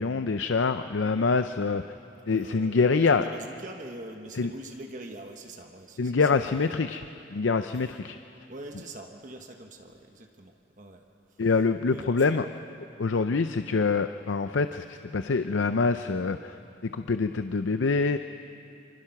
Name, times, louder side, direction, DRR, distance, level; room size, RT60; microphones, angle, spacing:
voice 1, 0.0-1.8 2.3-3.2 4.4-4.5 6.0-7.0 7.3-8.2 11.4-12.5 13.0-18.2, left 4 dB, 85° left, 9 dB, 0.6 m, -25 dB
voice 2, 2.2-6.8 7.8-7.9 8.5-11.4 11.8-12.4, right 1 dB, 40° right, 3 dB, 1.3 m, -44 dB
25.5 x 25.0 x 5.9 m, 2.7 s
head